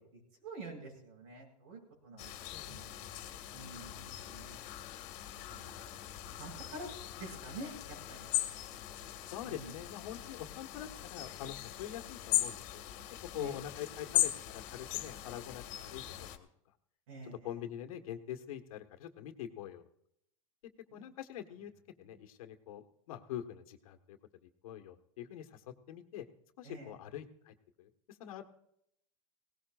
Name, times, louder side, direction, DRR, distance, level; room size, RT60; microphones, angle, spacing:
voice 1, 0.0-2.3 2.6-4.6 5.3-5.9 6.2-6.9 7.2-8.3 9.4-9.7 13.3-13.6 17.1-17.5 20.9-21.1 26.6-26.9, right 2 dB, 85° right, -1 dB, 7.8 m, -48 dB
sound 1, 2.2-16.4, left 15 dB, 50° left, 1.9 m, -39 dB
voice 2, 9.3-12.8 13.3-16.5 17.2-19.8 20.9-21.7 22.0-26.3 26.6-28.4, left 11 dB, 80° left, 6 dB, 1.6 m, -45 dB
20.0 x 18.0 x 2.5 m, 0.74 s
supercardioid pair, 140°, 18 cm